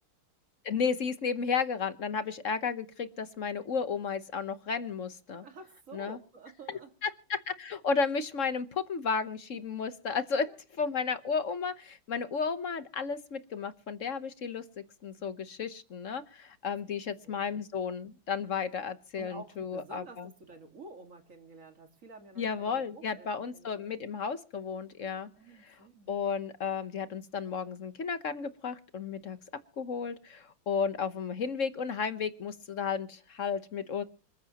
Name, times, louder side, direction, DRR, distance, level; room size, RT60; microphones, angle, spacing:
voice 1, 0.6-5.4 5.9-6.2 6.7-10.5 10.8-20.3 22.4-25.3 25.6-25.8 26.1-29.4 29.8-34.0, left 5 dB, 50° left, 11 dB, 1.1 m, -33 dB
voice 2, 5.4-6.9 10.4-10.6 16.8-16.9 17.2-17.4 19.2-24.0 25.2-26.1, right 3 dB, 40° right, 6 dB, 2.2 m, -50 dB
26.5 x 14.0 x 2.9 m, 0.38 s
omnidirectional pair, 2.2 m